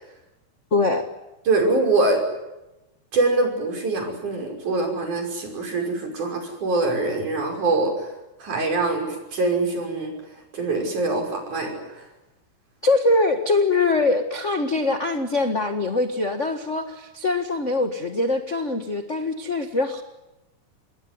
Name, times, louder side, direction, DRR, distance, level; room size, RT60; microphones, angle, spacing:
voice 1, 0.7-1.1 12.8-20.0, left 3 dB, 50° left, 6 dB, 0.8 m, -23 dB
voice 2, 1.5-2.2 3.1-8.1 8.4-10.1 10.5-12.1, right 3 dB, 55° right, 3 dB, 7.1 m, -24 dB
27.5 x 20.5 x 9.7 m, 0.98 s
omnidirectional pair, 4.2 m